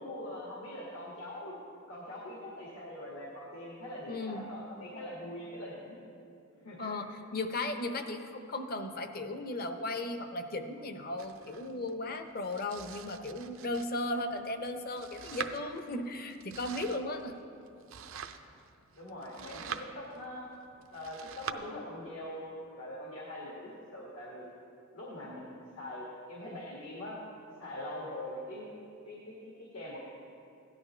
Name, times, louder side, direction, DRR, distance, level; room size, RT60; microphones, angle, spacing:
voice 1, 0.0-1.5 1.9-6.0 6.6-6.9 18.9-20.5 20.9-24.5 24.9-27.2 27.6-28.7 29.1-30.0, left 1 dB, 85° left, -4 dB, 1.9 m, -43 dB
voice 2, 4.1-4.5 6.8-17.4, left 2 dB, 50° left, 7 dB, 0.7 m, -36 dB
Domestic sounds home sounds, 11.2-21.5, right 7 dB, 80° right, 0.6 m, -46 dB
16.5 x 11.5 x 3.3 m, 2.6 s
head